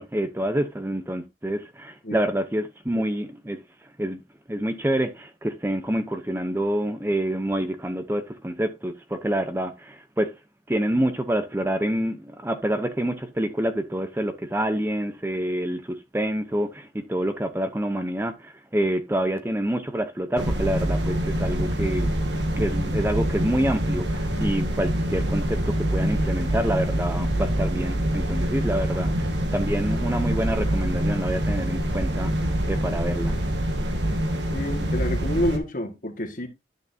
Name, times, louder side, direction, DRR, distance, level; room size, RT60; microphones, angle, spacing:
voice 1, 0.0-3.6 4.0-4.2 4.5-10.3 10.7-22.1 22.5-33.4, right 1 dB, 15° right, 0.7 m, -27 dB
sound 1, 20.4-35.6, equal, 75° right, 1.6 m, -25 dB
voice 2, 34.5-36.5, left 1 dB, 45° left, 1.7 m, -28 dB
11.0 x 6.6 x 2.7 m
head